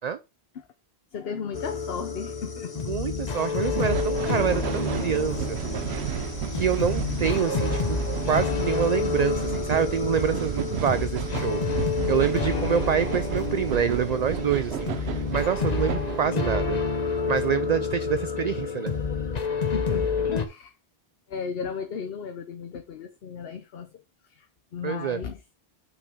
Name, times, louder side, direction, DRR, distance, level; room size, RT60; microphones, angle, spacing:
voice 1, 1.1-2.7 19.7-20.7 21.3-24.0 24.3-24.5 24.7-25.4, left 6 dB, 70° left, 1.0 m, -35 dB
sound 1, 1.5-20.5, left 5 dB, 45° left, 1.0 m, -29 dB
voice 2, 2.9-5.6 6.1-6.2 6.5-8.0 8.3-11.7 12.1-16.8 17.3-18.9 24.8-25.2, right 7 dB, 55° right, 0.5 m, -26 dB
sound 2, 3.7-16.3, right 10 dB, 85° right, 1.0 m, -32 dB
6.7 x 5.8 x 3.5 m
omnidirectional pair, 1.0 m